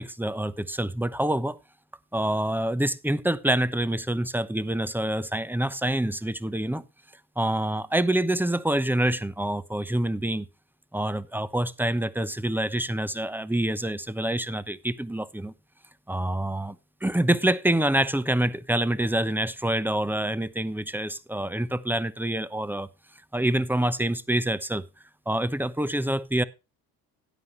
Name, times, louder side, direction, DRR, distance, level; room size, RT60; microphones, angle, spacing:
voice 1, 0.0-1.6 2.1-6.8 7.4-10.5 10.9-15.5 16.1-16.8 17.0-22.9 23.3-24.8 25.3-26.4, right 1 dB, 5° right, 0.8 m, -26 dB
13.5 x 9.6 x 3.1 m
supercardioid pair, 70°, 44 cm